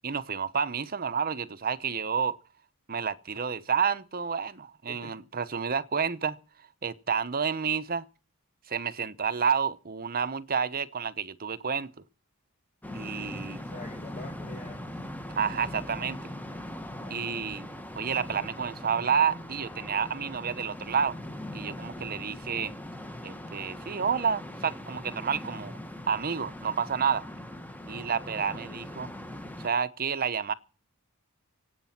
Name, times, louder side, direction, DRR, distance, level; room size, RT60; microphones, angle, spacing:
voice 1, 0.0-2.4 2.9-6.4 6.8-8.0 8.7-11.9 12.9-13.6 15.3-16.2 17.1-17.7 18.0-21.2 21.5-22.7 23.2-25.8 26.1-27.3 27.9-29.1 29.6-30.5, right 6 dB, 45° right, 0.9 m, -30 dB
sound 1, 12.8-29.7, left 1 dB, 10° left, 1.4 m, -41 dB
voice 2, 12.9-15.0 17.0-17.3, left 2 dB, 45° left, 3.9 m, -47 dB
24.5 x 8.9 x 5.9 m
head